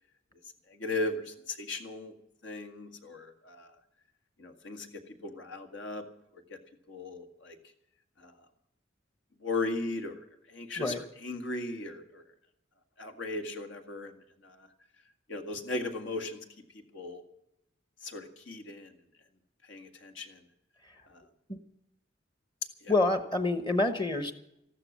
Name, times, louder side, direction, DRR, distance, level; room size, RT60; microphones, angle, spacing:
voice 1, 0.7-2.1 2.4-3.7 4.4-6.0 6.5-6.6 6.9-7.6 8.2-8.3 9.4-11.0 11.2-12.2 13.0-14.1 14.4-14.7 15.3-16.4 16.9-17.2 18.0-18.9 19.7-20.4 21.1-21.2 22.8-22.9, left 2 dB, 85° left, 7 dB, 2.0 m, -37 dB
voice 2, 22.9-24.3, left 2 dB, 25° left, 9 dB, 1.0 m, -27 dB
14.0 x 12.5 x 7.3 m, 0.81 s
head